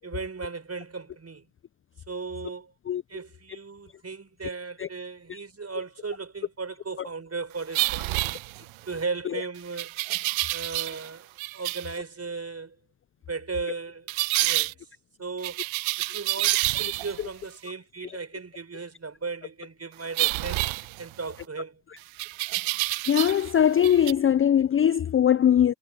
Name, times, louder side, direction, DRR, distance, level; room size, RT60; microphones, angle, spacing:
voice 1, 0.0-1.5 2.1-2.7 3.1-8.4 8.9-9.9 10.5-11.3 11.5-12.8 13.3-14.1 14.4-14.9 15.2-15.7 16.1-20.7 21.0-21.8, right 4 dB, 30° right, 6.6 m, -36 dB
sound 1, 7.7-8.9 9.8-11.1 11.4-11.9 14.1-14.7 15.4-17.3 20.1-21.4 22.2-23.5 23.8-24.1, right 20 dB, 75° right, 0.9 m, -28 dB
voice 2, 23.1-25.7, left 9 dB, 30° left, 0.5 m, -20 dB
supercardioid pair, 55°, 47 cm